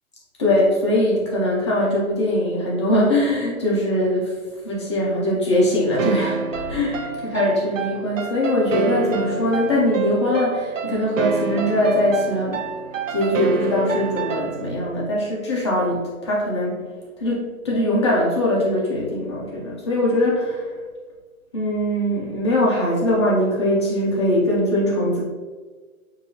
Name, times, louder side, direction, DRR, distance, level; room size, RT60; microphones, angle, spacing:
voice 1, 0.4-4.3 4.6-12.6 13.1-16.8 17.2-20.7 21.5-25.2, left 1 dB, 20° left, -5 dB, 0.6 m, -21 dB
sound 1, 6.0-14.9, right 6 dB, 65° right, 0.5 m, -28 dB
6.1 x 2.7 x 2.7 m, 1.4 s
hypercardioid pair, 155°, 42 cm